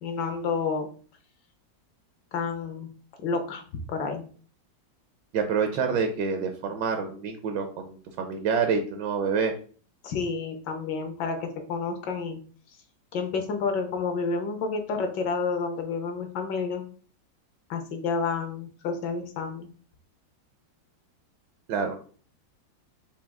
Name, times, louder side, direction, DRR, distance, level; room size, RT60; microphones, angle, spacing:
voice 1, 0.0-0.9 2.3-2.9 3.2-3.6 3.9-4.2 10.0-12.4 13.1-16.8 17.7-19.7, left 4 dB, 70° left, 6 dB, 1.4 m, -30 dB
voice 2, 5.3-9.5 21.7-22.0, right 5 dB, 75° right, 6 dB, 1.2 m, -27 dB
5.1 x 2.7 x 3.5 m, 0.43 s
omnidirectional pair, 2.0 m